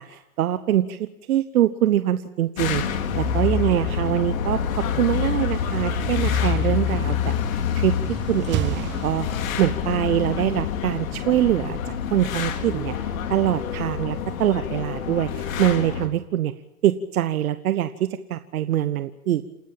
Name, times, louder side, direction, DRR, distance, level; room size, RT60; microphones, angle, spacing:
voice 1, 0.0-7.9 8.3-9.3 9.6-16.5 16.8-19.4, right 12 dB, 70° right, 11 dB, 1.1 m, -24 dB
sound 1, 2.6-16.1, left 7 dB, 65° left, 2.9 m, -26 dB
sound 2, 7.8-9.9, right 14 dB, 25° right, 1.1 m, -32 dB
28.5 x 13.0 x 8.9 m, 0.90 s
hypercardioid pair, 120°, 44 cm